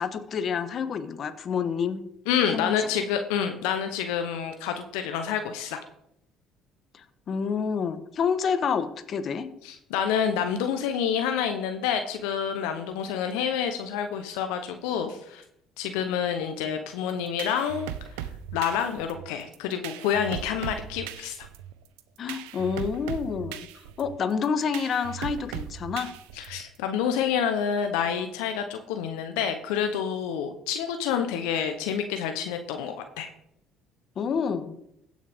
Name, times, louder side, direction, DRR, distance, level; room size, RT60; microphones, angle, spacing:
voice 1, 0.0-2.0 2.5-2.9 6.9-9.5 22.2-23.7 24.0-26.1 34.2-34.8, left 6 dB, 50° left, 10 dB, 1.1 m, -28 dB
voice 2, 2.3-5.8 9.6-15.4 15.8-17.9 18.5-21.4 26.4-33.3, left 8 dB, 85° left, 7 dB, 0.8 m, -28 dB
sound 1, 17.1-26.8, right 11 dB, 85° right, 0.6 m, -38 dB
16.0 x 6.4 x 3.6 m, 0.74 s
supercardioid pair, 70°, 0 cm